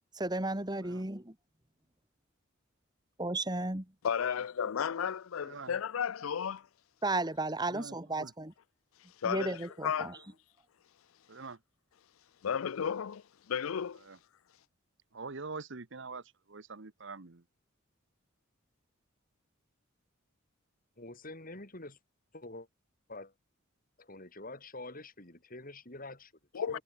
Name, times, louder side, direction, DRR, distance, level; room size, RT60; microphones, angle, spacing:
voice 1, 0.1-1.4 3.2-3.9 7.0-8.5 9.2-10.2, right 2 dB, 20° right, 2.2 m, -34 dB
voice 2, 4.0-6.7 9.2-10.2 12.4-14.0 26.5-26.8, left 7 dB, 85° left, 0.5 m, -33 dB
voice 3, 5.4-5.8 7.7-8.3 11.3-11.6 14.0-14.2 15.1-16.2 16.5-17.4, right 4 dB, 65° right, 1.1 m, -44 dB
voice 4, 21.0-22.0 22.3-22.7 23.1-23.3 24.0-26.8, left 2 dB, 45° left, 5.7 m, -46 dB
head